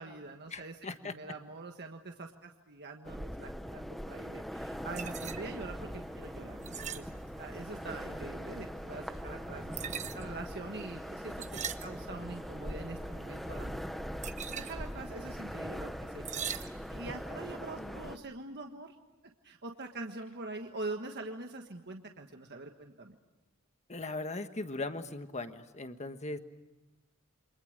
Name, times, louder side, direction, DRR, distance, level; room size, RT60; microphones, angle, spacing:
voice 1, 0.0-0.7 1.0-7.1 7.4-9.7 10.1-13.8 14.5-18.9 19.4-23.1, right 2 dB, 50° right, 4 dB, 1.5 m, -44 dB
voice 2, 0.5-1.2 17.8-18.0 23.9-26.4, left 2 dB, 35° left, 8 dB, 1.5 m, -39 dB
sound 1, 3.0-18.2, equal, ahead, 0.9 m, -42 dB
sound 2, 4.6-17.3, right 6 dB, 35° right, 1.1 m, -45 dB
29.0 x 25.5 x 6.6 m, 1.1 s
head